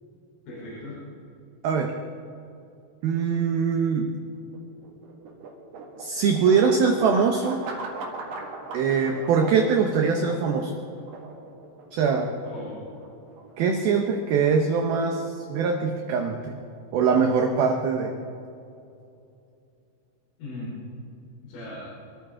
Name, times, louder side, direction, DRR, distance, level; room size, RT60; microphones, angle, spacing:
voice 1, 0.5-1.0 12.4-13.0 20.4-20.8 21.4-21.9, left 1 dB, 85° left, -7 dB, 6.3 m, -38 dB
voice 2, 3.0-4.1 6.0-7.6 8.7-10.7 11.9-12.3 13.6-16.4 16.9-18.1, right 5 dB, 85° right, 3 dB, 2.1 m, -22 dB
sound 1, 4.1-18.2, right 3 dB, 55° right, 3.0 m, -41 dB
26.0 x 13.5 x 3.7 m, 2.6 s
omnidirectional pair, 5.6 m